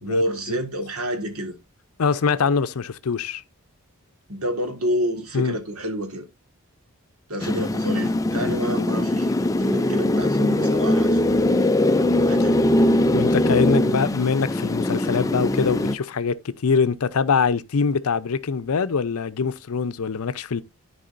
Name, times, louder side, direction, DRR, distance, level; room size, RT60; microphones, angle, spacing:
voice 1, 0.0-1.5 4.3-6.3 7.3-9.3 9.6-11.3 12.3-12.7, equal, 80° right, 1.7 m, -28 dB
voice 2, 2.0-3.4 5.3-5.6 13.1-20.6, left 5 dB, 80° left, 0.5 m, -23 dB
sound 1, 7.4-15.9, left 1 dB, 15° left, 0.3 m, -21 dB
13.0 x 4.8 x 2.5 m
head